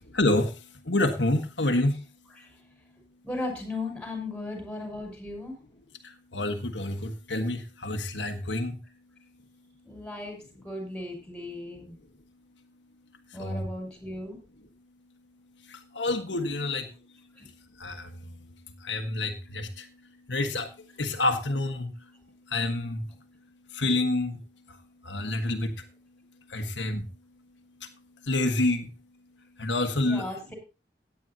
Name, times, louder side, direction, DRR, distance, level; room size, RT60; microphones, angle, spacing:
voice 1, 0.1-0.6 0.8-2.0 6.0-8.8 13.4-13.7 15.7-16.9 17.8-18.1 18.8-19.9 20.3-20.7 21.0-21.9 22.5-23.1 23.7-24.4 25.0-25.8 26.5-27.1 28.2-28.9 29.6-30.3, left 2 dB, 80° left, 5 dB, 1.5 m, -28 dB
voice 2, 3.2-5.6 9.8-10.4 10.6-12.0 13.3-14.4 17.4-17.5 30.0-30.5, left 2 dB, 5° left, 2 dB, 5.8 m, -36 dB
17.0 x 9.6 x 2.8 m, 0.31 s
head